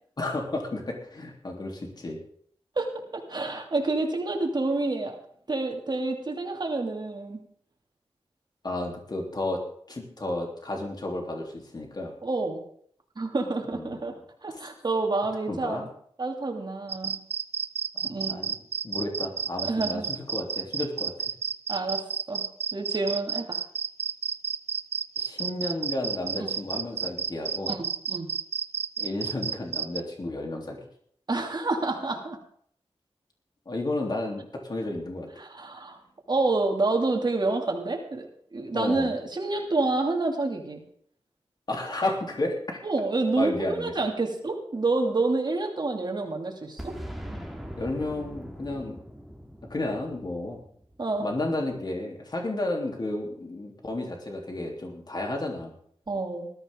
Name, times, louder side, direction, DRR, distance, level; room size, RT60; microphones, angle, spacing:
voice 1, 0.2-2.2 8.6-9.6 9.9-12.1 13.7-14.1 14.5-14.6 15.5-15.8 17.9-18.5 18.8-21.1 25.2-27.7 29.0-30.8 33.6-35.3 38.7-39.1 41.7-42.8 43.4-43.9 47.8-49.0 49.7-50.6 51.2-55.7, left 2 dB, 40° left, 1 dB, 3.3 m, -32 dB
voice 2, 2.8-5.2 5.5-7.4 12.2-12.6 13.2-14.1 14.4-15.9 16.2-17.2 18.0-18.5 19.6-20.1 21.7-22.4 22.7-23.6 26.4-26.5 27.7-28.3 31.3-32.4 35.4-36.0 36.3-38.3 38.5-40.8 42.8-47.0 51.0-51.3 56.1-56.5, right 3 dB, 45° right, 2 dB, 2.6 m, -28 dB
sound 1, 16.9-30.0, right 6 dB, 80° right, 0.6 m, -31 dB
Boom, 46.8-51.5, equal, ahead, 2.1 m, -41 dB
19.5 x 13.5 x 3.8 m, 0.62 s
wide cardioid pair, 120°, 10 cm